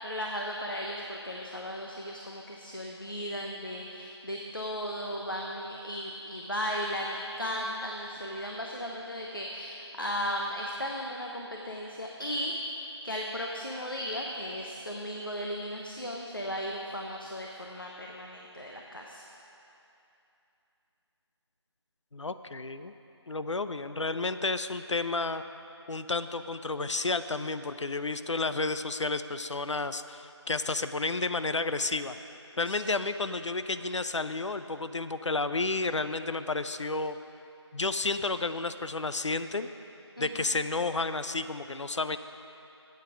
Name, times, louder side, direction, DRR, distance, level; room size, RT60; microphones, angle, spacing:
voice 1, 0.0-12.6 13.0-19.2 32.7-32.9 40.2-40.4, equal, 50° left, 0 dB, 0.7 m, -36 dB
voice 2, 22.1-22.9 23.3-25.4 25.9-32.2 32.6-37.2 37.7-39.7 40.2-42.2, left 3 dB, 85° left, 11 dB, 0.5 m, -31 dB
8.2 x 8.0 x 6.0 m, 2.8 s
figure-of-eight pair, 180°, 15 cm